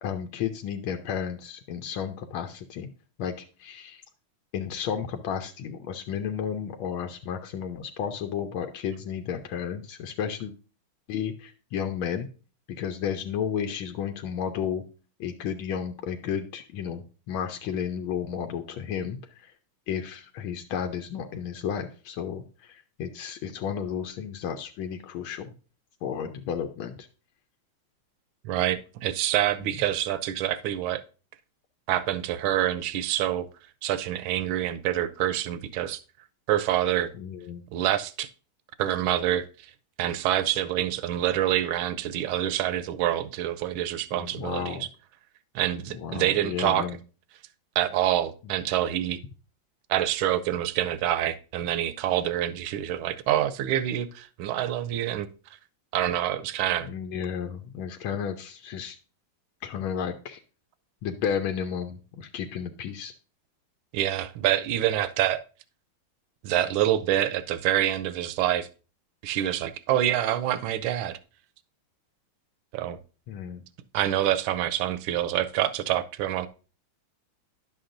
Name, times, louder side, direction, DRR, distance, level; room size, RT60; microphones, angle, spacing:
voice 1, 0.0-2.9 3.2-4.0 4.5-10.5 11.1-12.3 12.7-14.8 15.2-19.5 19.9-25.5 26.0-27.1 37.1-37.6 44.1-44.9 45.9-47.0 56.8-59.0 59.6-60.4 61.0-63.1 73.3-73.6, left 8 dB, 85° left, 1.4 m, -32 dB
voice 2, 28.4-31.0 31.9-33.5 33.8-36.0 36.5-37.1 37.7-38.3 38.8-39.7 40.0-44.9 45.5-46.8 47.8-49.2 49.9-55.3 55.9-56.9 63.9-65.4 66.4-68.7 69.2-71.2 72.7-73.0 73.9-76.5, right 12 dB, 80° right, 1.3 m, -26 dB
10.5 x 7.0 x 2.6 m
omnidirectional pair, 2.2 m